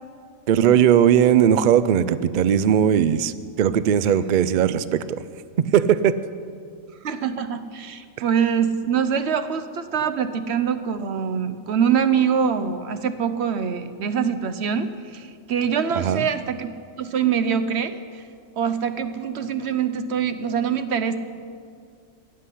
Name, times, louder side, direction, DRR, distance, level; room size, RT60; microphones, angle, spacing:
voice 1, 0.5-5.2 5.6-6.2 15.9-16.2, right 9 dB, 85° right, 15 dB, 0.4 m, -18 dB
voice 2, 7.0-16.7 17.0-18.2 18.6-21.2, right 7 dB, 60° right, 11 dB, 0.9 m, -24 dB
14.0 x 7.6 x 9.9 m, 2.3 s
omnidirectional pair, 1.4 m